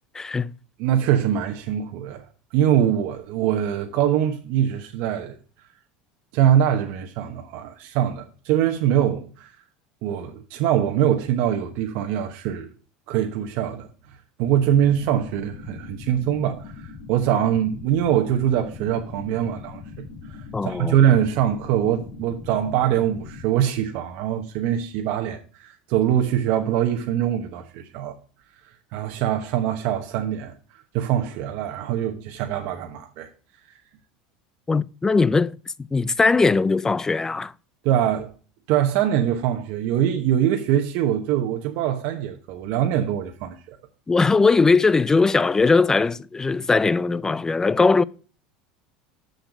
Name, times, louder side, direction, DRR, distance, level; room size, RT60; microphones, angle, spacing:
voice 1, 0.1-0.5 20.5-21.0 34.7-37.5 44.1-48.0, left 4 dB, 15° left, 0.4 m, -20 dB
voice 2, 0.8-2.2 2.5-5.3 6.3-9.5 10.0-12.7 13.1-13.9 14.4-19.8 20.3-28.2 28.9-30.5 30.9-33.3 37.8-38.3 38.7-43.8, right 10 dB, 65° right, 1.0 m, -23 dB
sound 1, 14.4-23.5, left 5 dB, 55° left, 2.2 m, -40 dB
6.7 x 6.5 x 6.0 m
supercardioid pair, 100°, 4 cm